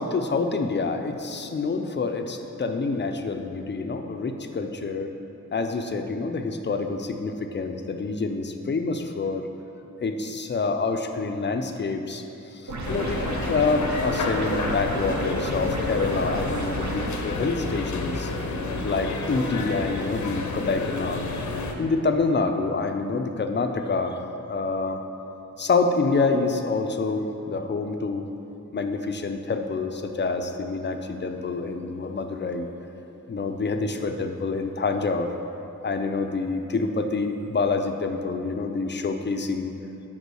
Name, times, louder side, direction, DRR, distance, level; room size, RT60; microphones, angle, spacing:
voice 1, 0.0-5.1 5.5-9.4 10.0-12.2 12.5-18.3 18.8-21.5 21.8-24.2 24.5-25.0 25.6-28.2 28.7-32.7 33.3-35.3 35.8-39.7, left 4 dB, 40° left, 6 dB, 0.5 m, -27 dB
sound 1, 12.7-17.1, right 2 dB, 70° right, 0.8 m, -32 dB
sound 2, 12.8-21.7, left 2 dB, 75° left, 0.7 m, -30 dB
5.3 x 5.3 x 6.2 m, 3.0 s
wide cardioid pair, 120°, 30 cm